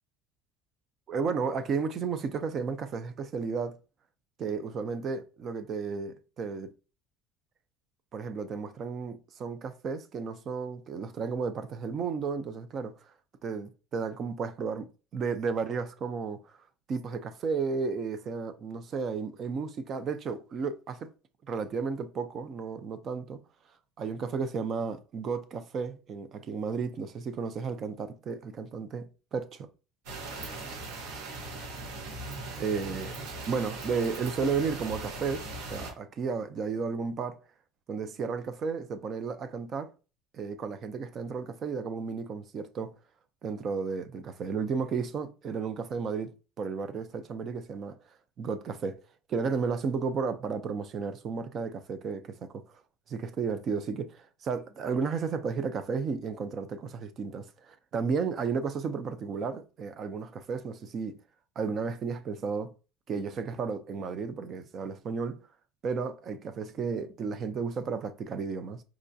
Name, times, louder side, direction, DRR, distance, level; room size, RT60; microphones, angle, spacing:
voice 1, 1.1-3.8 4.4-6.7 8.1-12.9 13.4-16.5 16.9-21.1 21.5-23.4 24.0-29.7 32.6-33.2 33.5-37.4 37.9-39.9 40.3-42.9 43.4-48.0 48.4-49.0 49.3-52.8 53.1-61.2 61.6-62.7 63.1-65.4 65.8-68.8, right 5 dB, 30° right, 0.4 m, -33 dB
sound 1, 30.1-35.9, right 2 dB, 70° right, 0.9 m, -39 dB
4.7 x 2.2 x 2.6 m
cardioid pair, 175°, 0 cm